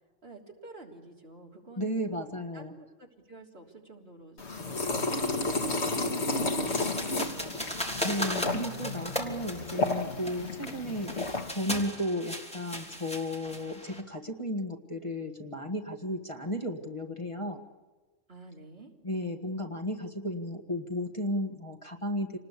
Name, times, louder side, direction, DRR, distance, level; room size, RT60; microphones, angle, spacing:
voice 1, 0.2-2.2 2.5-8.5 18.3-18.9, right 2 dB, 50° right, 0 dB, 3.6 m, -50 dB
voice 2, 1.8-2.7 8.0-17.6 19.0-22.4, equal, 25° left, 1 dB, 1.7 m, -34 dB
sound 1, 4.4-11.5, left 2 dB, 60° left, 1.9 m, -32 dB
sound 2, 6.7-14.0, equal, 5° left, 3.1 m, -37 dB
28.0 x 20.0 x 8.4 m, 1.3 s
omnidirectional pair, 1.3 m